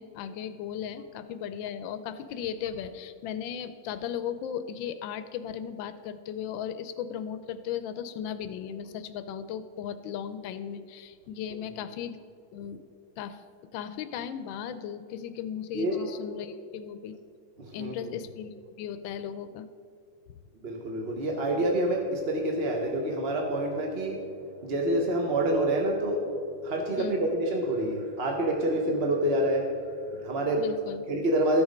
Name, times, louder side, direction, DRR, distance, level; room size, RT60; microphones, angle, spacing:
voice 1, 0.0-12.2 12.5-12.8 13.2-13.4 13.7-17.1 17.7-19.7 27.0-27.3 30.6-31.0, left 8 dB, 85° left, 11 dB, 1.4 m, -36 dB
voice 2, 17.6-18.1 20.6-24.2 24.6-26.2 26.6-29.7 30.1-30.6 31.1-31.6, right 1 dB, 40° right, 1 dB, 1.0 m, -27 dB
13.5 x 7.3 x 5.1 m, 2.4 s
omnidirectional pair, 2.1 m